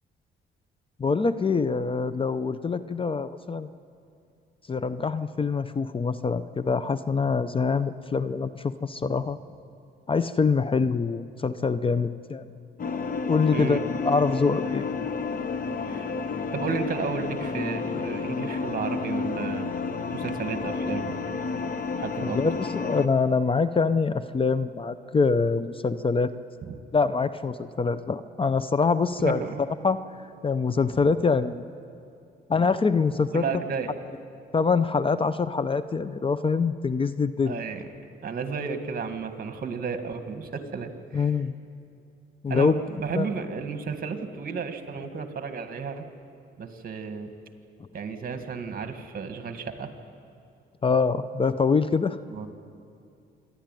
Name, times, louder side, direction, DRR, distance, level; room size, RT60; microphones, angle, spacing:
voice 1, 1.0-3.7 4.7-9.4 10.1-12.5 13.3-14.9 22.3-26.3 26.9-29.4 29.8-30.0 30.4-31.6 32.5-33.4 34.5-37.6 41.1-41.5 42.4-43.3 50.8-52.2, left 4 dB, 25° left, 13 dB, 0.6 m, -24 dB
sound 1, 12.8-23.1, left 4 dB, 45° left, 1.2 m, -31 dB
voice 2, 13.5-13.8 15.9-16.1 16.5-19.7 20.1-21.2 22.0-22.4 26.6-26.8 29.3-29.6 30.9-31.0 33.3-33.9 37.5-37.9 38.2-41.3 42.5-46.0 46.6-47.3 47.9-49.9 52.3-52.5, right 5 dB, 45° right, 7 dB, 2.0 m, -33 dB
26.5 x 11.5 x 9.1 m, 2.5 s
cardioid pair, 90°, 20 cm